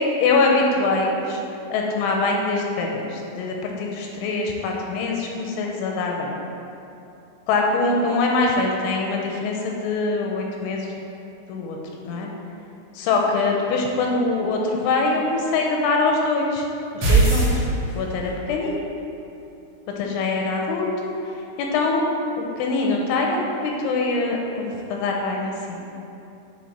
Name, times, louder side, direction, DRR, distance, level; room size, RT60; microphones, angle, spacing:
voice 1, 0.0-1.4 1.7-6.3 7.5-10.9 11.5-11.8 12.0-12.3 12.9-16.7 16.9-17.6 18.0-18.9 20.0-21.1 21.6-22.1 22.4-25.8, left 3 dB, 85° left, 0 dB, 2.9 m, -23 dB
sound 1, 17.0-18.3, right 3 dB, 90° right, 1.3 m, -18 dB
9.5 x 3.8 x 4.2 m, 2.8 s
omnidirectional pair, 5.7 m